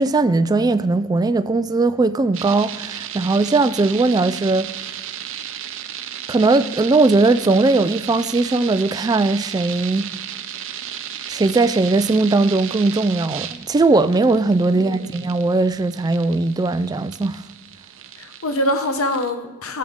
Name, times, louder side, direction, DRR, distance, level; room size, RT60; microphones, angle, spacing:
voice 1, 0.0-4.7 6.3-10.1 11.3-17.4, right 3 dB, 20° right, 0.3 m, -19 dB
sound 1, 2.3-19.3, right 10 dB, 65° right, 0.6 m, -34 dB
voice 2, 14.7-15.2 18.2-19.8, left 1 dB, 85° left, 0.9 m, -24 dB
12.0 x 7.7 x 3.5 m
head